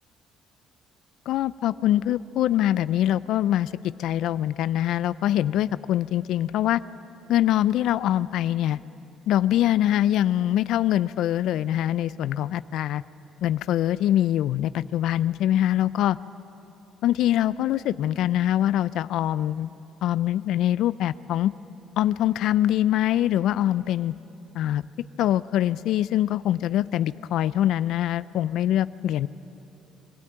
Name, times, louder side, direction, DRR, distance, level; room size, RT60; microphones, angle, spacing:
voice 1, 1.3-3.7 4.0-6.8 7.3-8.8 9.3-13.0 13.4-16.2 17.0-19.7 20.0-21.5 22.0-24.1 24.5-24.8 25.2-29.3, left 12 dB, 75° left, 17 dB, 0.4 m, -23 dB
23.5 x 13.5 x 8.8 m, 2.9 s
cardioid pair, 95°, 0 cm